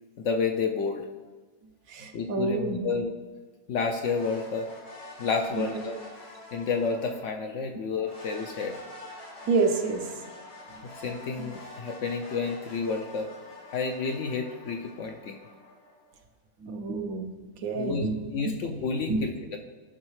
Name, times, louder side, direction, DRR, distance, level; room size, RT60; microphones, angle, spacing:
voice 1, 0.2-1.1 2.1-3.1 3.7-4.7 5.2-5.9 6.5-8.8 11.0-13.3 13.7-15.4 17.7-19.6, left 5 dB, 65° left, 4 dB, 0.8 m, -30 dB
voice 2, 1.9-2.9 5.5-5.8 9.5-10.0 11.4-11.5 16.6-17.3 17.6-18.2 19.1-19.2, right 4 dB, 70° right, 5 dB, 1.2 m, -28 dB
sound 1, 4.0-7.4 8.0-16.2, left 2 dB, 90° left, 2.5 m, -46 dB
12.5 x 5.4 x 3.2 m, 1.3 s
omnidirectional pair, 1.6 m